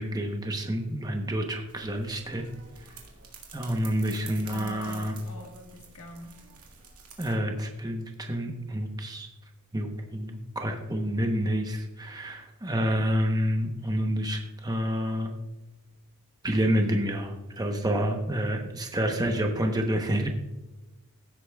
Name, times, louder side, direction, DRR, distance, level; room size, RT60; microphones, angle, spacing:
voice 1, 0.0-2.5 2.8-3.0 3.5-5.1 7.2-9.3 9.7-15.3 16.4-20.3, equal, 20° right, 3 dB, 0.9 m, -28 dB
sound 1, 1.7-7.4, right 5 dB, 70° right, 2.0 m, -48 dB
voice 2, 4.5-6.3, left 1 dB, 70° left, 2 dB, 1.6 m, -43 dB
16.0 x 8.3 x 2.3 m, 1.0 s
head